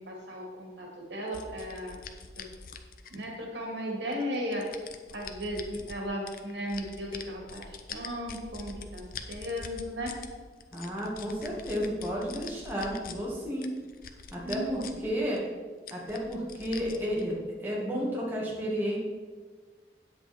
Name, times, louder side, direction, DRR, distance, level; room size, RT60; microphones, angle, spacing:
voice 1, 0.0-2.0 2.4-2.5 3.1-4.6 5.1-10.1 14.4-15.1, equal, 80° right, -1 dB, 2.4 m, -36 dB
sound 1, 1.3-3.5 4.1-6.0 6.3-10.3 10.6-13.2 13.6-15.1 15.3-15.4 15.9-17.2, left 6 dB, 50° left, 0.7 m, -44 dB
voice 2, 10.7-13.7 14.3-15.4 15.9-19.0, equal, 10° right, -5 dB, 1.9 m, -32 dB
8.8 x 8.0 x 4.3 m, 1.4 s
head